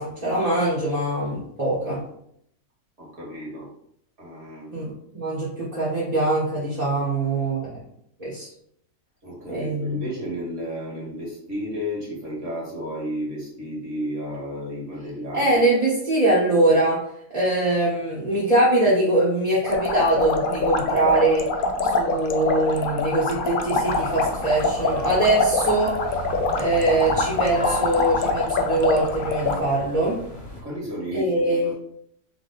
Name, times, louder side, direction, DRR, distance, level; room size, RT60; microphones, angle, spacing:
voice 1, 0.0-2.0 4.7-7.8 8.2-8.5 9.5-10.0 15.3-17.0 17.3-21.5 21.8-26.2 26.5-30.2 31.1-31.7, right 2 dB, 30° right, -9 dB, 1.1 m, -22 dB
voice 2, 3.0-3.7 4.2-4.9 9.2-15.6 30.6-31.7, equal, 65° right, -5 dB, 2.0 m, -33 dB
sound 1, 19.6-29.6, left 3 dB, 65° left, 0.5 m, -25 dB
sound 2, 23.8-30.6, left 1 dB, 35° left, 1.1 m, -36 dB
3.4 x 3.0 x 4.0 m, 0.71 s
omnidirectional pair, 1.4 m